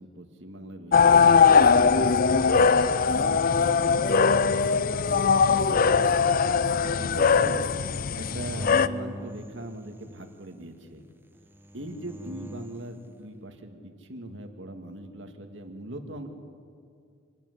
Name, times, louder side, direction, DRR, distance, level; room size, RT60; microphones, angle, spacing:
voice 1, 0.0-2.7 3.1-6.0 7.0-7.7 8.1-11.1 11.7-16.3, right 1 dB, 70° right, 5 dB, 2.1 m, -40 dB
sound 1, 0.9-8.9, left 5 dB, 45° left, 0.5 m, -20 dB
sound 2, 8.5-10.4 11.4-12.9, equal, 10° right, 0.9 m, -43 dB
25.5 x 13.0 x 9.9 m, 2.3 s
head